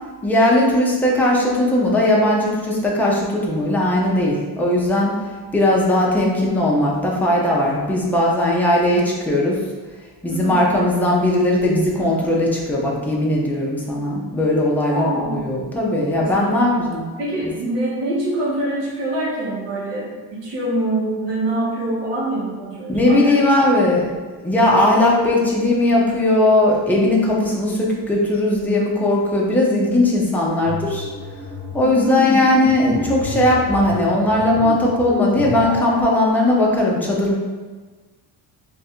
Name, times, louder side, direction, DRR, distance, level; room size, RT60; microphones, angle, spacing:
voice 1, 0.2-5.2 5.5-9.6 10.2-17.1 22.9-24.1 24.4-31.1 31.7-37.4, left 1 dB, 5° left, -4 dB, 0.5 m, -18 dB
voice 2, 14.8-15.5 16.2-16.9 17.2-23.4 32.1-32.3, right 1 dB, 85° right, -6 dB, 1.4 m, -25 dB
sound 1, 30.6-36.2, equal, 25° left, 0.8 m, -28 dB
3.2 x 2.4 x 4.3 m, 1.4 s
cardioid pair, 160°, 41 cm